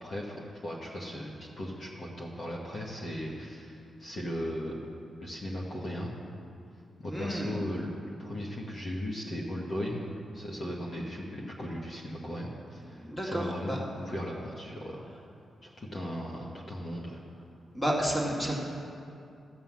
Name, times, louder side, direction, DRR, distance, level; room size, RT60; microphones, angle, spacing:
voice 1, 0.0-4.8 5.2-6.1 7.0-10.0 10.3-15.0 15.6-17.2, equal, 40° left, -3 dB, 1.3 m, -37 dB
voice 2, 7.1-7.5 12.9-13.8 17.7-18.6, equal, 10° left, -3 dB, 2.0 m, -31 dB
14.5 x 5.6 x 7.4 m, 2.5 s
wide cardioid pair, 135°, 0 cm